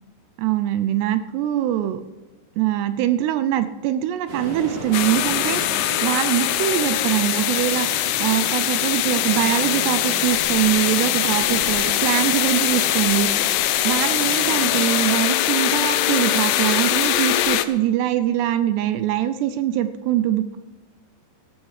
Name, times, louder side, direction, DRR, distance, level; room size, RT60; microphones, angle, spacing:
voice 1, 0.4-2.0 2.6-5.6 6.0-7.9 8.2-13.3 13.8-20.6, right 12 dB, 80° right, 11 dB, 2.5 m, -23 dB
sound 1, 4.3-14.8, right 1 dB, 45° right, 4.2 m, -34 dB
sound 2, 4.9-17.7, left 13 dB, 80° left, 2.9 m, -22 dB
14.5 x 11.5 x 4.9 m, 1.2 s
omnidirectional pair, 5.3 m